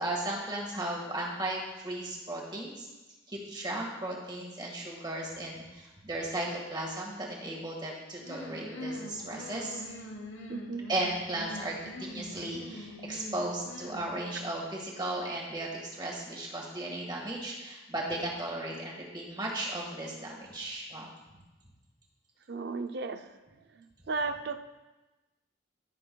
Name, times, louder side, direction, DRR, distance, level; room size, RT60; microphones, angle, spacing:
voice 1, 0.0-2.9 3.3-9.8 10.9-21.1, right 1 dB, 25° right, -2 dB, 1.7 m, -36 dB
sound 1, 8.2-14.6, left 1 dB, 90° left, 1.0 m, -44 dB
voice 2, 10.5-10.9 22.5-23.4 23.7-24.6, right 4 dB, 55° right, 8 dB, 0.5 m, -35 dB
14.5 x 6.7 x 2.3 m, 1.1 s
head